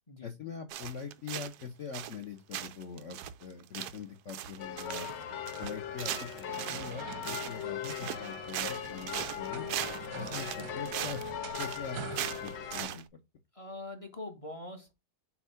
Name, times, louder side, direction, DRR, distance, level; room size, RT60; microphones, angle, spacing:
voice 1, 0.2-5.1 5.6-9.6 10.1-11.2 11.6-13.0, left 6 dB, 60° left, 0.8 m, -43 dB
sound 1, 0.7-1.6 1.9-2.2 2.5-13.0, right 11 dB, 90° right, 0.8 m, -39 dB
sound 2, 4.6-12.8, left 9 dB, 85° left, 1.6 m, -40 dB
sound 3, 4.9-13.0, right 8 dB, 65° right, 1.0 m, -47 dB
voice 2, 13.5-14.9, left 2 dB, 30° left, 0.6 m, -43 dB
7.2 x 2.4 x 5.5 m
omnidirectional pair, 2.3 m